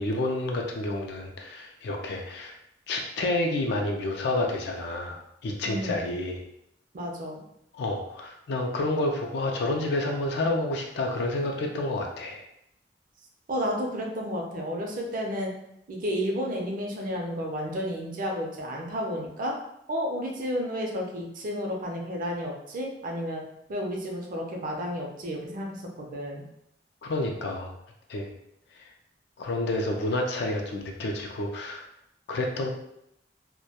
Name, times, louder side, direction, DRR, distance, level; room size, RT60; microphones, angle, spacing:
voice 1, 0.0-2.5 2.9-6.4 7.7-12.4 27.0-27.7 28.1-28.3 29.4-31.8 32.3-32.7, left 2 dB, 65° left, 1 dB, 0.3 m, -29 dB
voice 2, 5.6-6.1 6.9-7.4 13.5-15.5 15.9-19.6 19.9-23.4 23.7-26.4, equal, 50° right, 0 dB, 0.5 m, -31 dB
2.1 x 2.1 x 2.8 m, 0.78 s
head